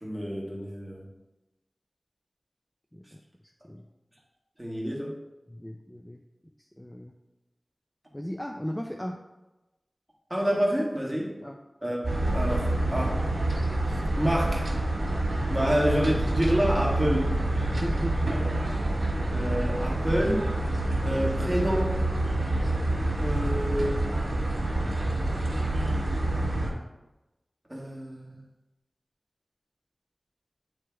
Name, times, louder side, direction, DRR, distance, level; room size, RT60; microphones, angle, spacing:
voice 1, 0.0-1.0 4.6-5.2 10.3-11.3 11.8-13.2 13.9-14.7 15.5-17.3 19.3-20.5 21.0-22.0 23.2-24.0 27.7-28.4, equal, 15° right, -3 dB, 1.6 m, -28 dB
voice 2, 5.5-6.2 6.6-7.1 8.1-9.2 11.4-11.6 15.6-15.7 17.6-18.2, equal, 10° left, 3 dB, 0.4 m, -36 dB
sound 1, 12.0-26.7, right 1 dB, 65° right, 1.6 m, -27 dB
9.0 x 3.3 x 3.4 m, 1.0 s
wide cardioid pair, 55°, 0 cm